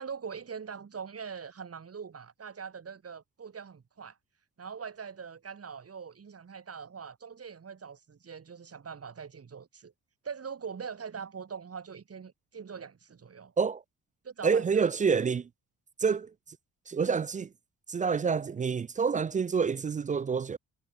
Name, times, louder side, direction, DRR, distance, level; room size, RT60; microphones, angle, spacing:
voice 1, 0.0-4.2 4.6-9.9 10.2-13.5 14.2-15.2, right 6 dB, 40° right, 4.3 m, -42 dB
voice 2, 14.4-15.4 16.0-16.3 16.9-17.5 17.9-20.6, right 5 dB, 25° right, 0.3 m, -27 dB
cardioid pair, 80°, 36 cm